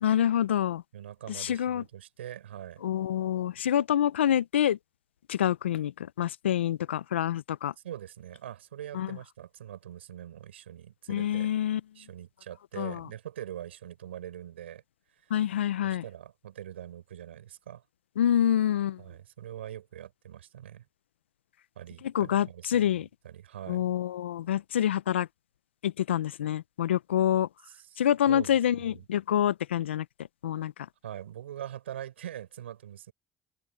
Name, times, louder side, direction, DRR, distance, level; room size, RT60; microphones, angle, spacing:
voice 1, 0.0-0.8 1.4-1.8 2.8-4.8 5.3-5.9 6.2-7.7 8.9-9.2 11.1-11.8 12.8-13.0 15.3-16.0 18.2-19.0 22.1-23.1 23.7-25.3 25.8-27.5 28.0-30.1 30.4-30.7, left 10 dB, 90° left, 0.7 m, -26 dB
voice 2, 0.9-2.8 7.8-11.5 12.0-14.8 15.2-15.3 15.8-17.8 19.0-20.8 21.8-23.9 27.8-29.0 31.0-33.1, right 11 dB, 90° right, 5.2 m, -43 dB
hypercardioid pair, 55°, 6 cm